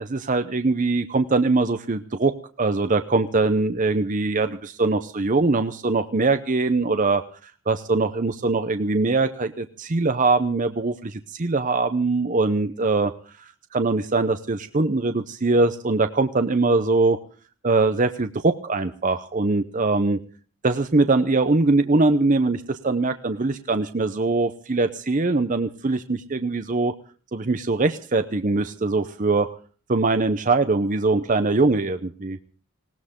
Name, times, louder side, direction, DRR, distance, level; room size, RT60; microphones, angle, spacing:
voice 1, 0.0-2.3 2.6-13.1 13.4-17.2 17.6-20.2 20.6-26.9 27.3-29.5 29.9-32.4, right 3 dB, 35° right, 9 dB, 0.7 m, -22 dB
19.5 x 18.0 x 3.7 m, 0.40 s
head